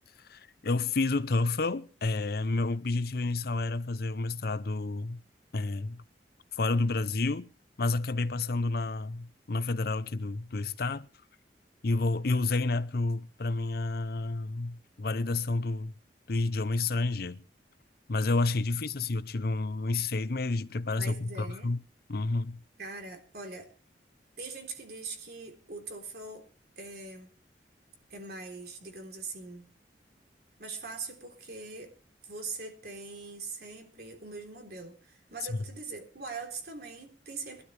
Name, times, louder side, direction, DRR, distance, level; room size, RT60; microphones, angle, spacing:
voice 1, 0.3-5.2 5.5-6.0 6.5-7.5 7.8-11.1 11.8-15.9 16.3-17.4 18.1-21.8 22.1-22.6 35.5-35.6, left 3 dB, 60° left, 0.7 m, -30 dB
voice 2, 21.0-21.7 22.8-23.7 24.4-26.5 26.8-27.3 28.1-29.7 30.6-31.9 32.2-37.6, right 3 dB, 60° right, 3.5 m, -42 dB
22.0 x 12.5 x 3.3 m
head